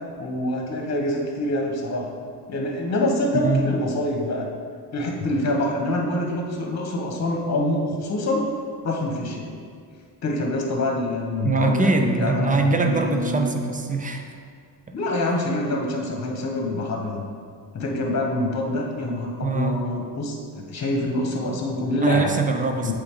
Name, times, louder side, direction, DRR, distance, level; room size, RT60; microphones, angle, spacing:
voice 1, 0.2-2.1 2.5-4.5 4.9-8.5 8.8-9.5 10.2-13.4 14.9-17.2 17.7-22.3 22.8-22.9, left 1 dB, 40° left, 0 dB, 1.2 m, -25 dB
voice 2, 11.4-14.3 19.4-19.8 22.0-22.9, right 3 dB, 20° right, 5 dB, 0.5 m, -23 dB
7.6 x 3.5 x 3.8 m, 2.1 s
cardioid pair, 90°, 42 cm